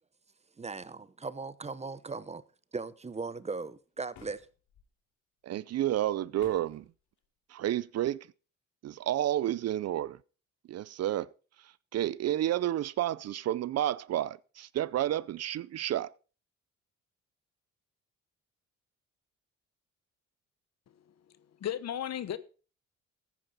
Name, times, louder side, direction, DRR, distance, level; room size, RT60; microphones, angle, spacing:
voice 1, 0.6-2.4 2.7-4.5, right 4 dB, 20° right, 0.8 m, -38 dB
sound 1, 4.1-4.9 6.4-6.9, left 6 dB, 75° left, 2.7 m, -54 dB
voice 2, 5.4-6.8 7.5-8.3 8.8-10.2 10.7-11.3 11.9-16.1, right 12 dB, 55° right, 0.5 m, -30 dB
voice 3, 20.9-22.4, left 10 dB, 60° left, 1.1 m, -37 dB
14.5 x 9.1 x 4.1 m
cardioid pair, 90°, 30 cm